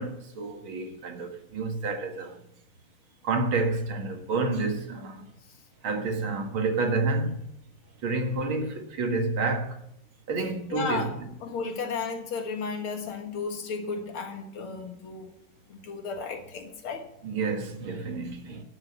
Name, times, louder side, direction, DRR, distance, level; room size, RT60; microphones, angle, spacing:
voice 1, 0.0-2.4 3.2-5.2 5.8-7.4 8.0-9.8 10.3-11.3 17.2-18.6, right 3 dB, 75° right, 2.5 m, -29 dB
voice 2, 10.7-11.1 11.4-15.3 15.7-17.1, left 4 dB, 90° left, 2.5 m, -33 dB
12.0 x 6.6 x 7.3 m
omnidirectional pair, 2.3 m